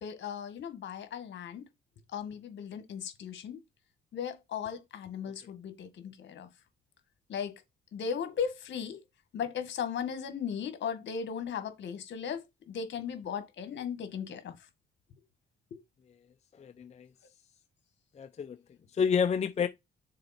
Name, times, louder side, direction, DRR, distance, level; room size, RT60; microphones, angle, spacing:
voice 1, 0.0-1.6 2.1-3.6 4.1-6.5 7.3-7.6 7.9-9.0 9.3-14.5 15.7-15.8, left 7 dB, 65° left, 1.7 m, -37 dB
voice 2, 16.6-17.1 18.2-18.6 18.9-19.7, left 6 dB, 35° left, 0.5 m, -29 dB
6.6 x 4.0 x 4.3 m
cardioid pair, 90°, 20 cm